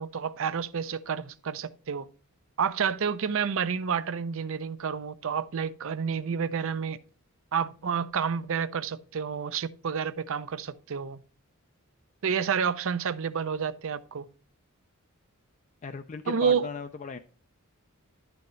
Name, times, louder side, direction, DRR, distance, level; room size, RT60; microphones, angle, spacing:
voice 1, 0.0-2.1 2.6-7.0 7.5-11.2 12.2-14.3 16.3-16.7, right 6 dB, 65° right, 0.5 m, -29 dB
voice 2, 15.8-17.2, left 5 dB, 35° left, 0.4 m, -37 dB
11.0 x 6.9 x 3.1 m
head